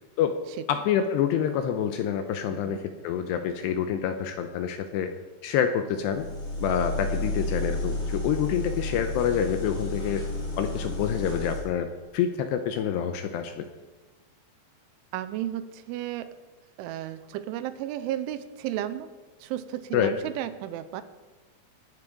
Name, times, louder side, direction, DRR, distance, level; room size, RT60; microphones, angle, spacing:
voice 1, 0.7-5.1 5.4-6.3 6.6-10.2 10.6-11.9 12.1-13.7 19.9-20.1, left 8 dB, 80° left, 6 dB, 2.6 m, -27 dB
voice 2, 2.5-2.8 15.1-16.3 16.8-19.1 19.4-21.0, right 12 dB, 85° right, 12 dB, 3.2 m, -33 dB
sound 1, 6.0-11.6, left 1 dB, 50° left, 6.2 m, -32 dB
19.0 x 9.6 x 5.1 m, 1.3 s
omnidirectional pair, 5.4 m